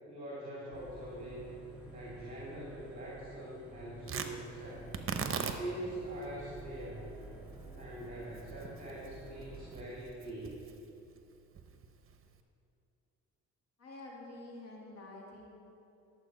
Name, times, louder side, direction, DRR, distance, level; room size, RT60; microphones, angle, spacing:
voice 1, 0.1-1.5 1.9-4.9 5.6-7.1 7.8-10.6, right 1 dB, 25° right, -6 dB, 2.7 m, -43 dB
sound 1, 0.7-9.7, right 1 dB, 5° right, 2.8 m, -50 dB
Tearing, 4.0-12.4, right 6 dB, 45° right, 0.9 m, -42 dB
voice 2, 13.8-15.5, left 2 dB, 55° left, -2 dB, 2.1 m, -48 dB
11.5 x 7.3 x 5.4 m, 2.7 s
cardioid pair, 90°, 30 cm